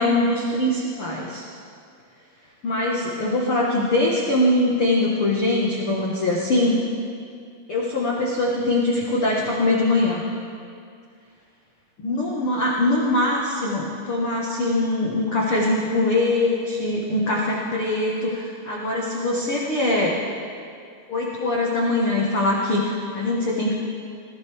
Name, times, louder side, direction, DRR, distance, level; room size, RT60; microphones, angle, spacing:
voice 1, 0.0-1.5 2.6-6.8 7.7-10.2 12.0-20.2 21.1-23.8, left 2 dB, 80° left, -4 dB, 1.2 m, -22 dB
19.5 x 15.5 x 3.5 m, 2.3 s
omnidirectional pair, 4.9 m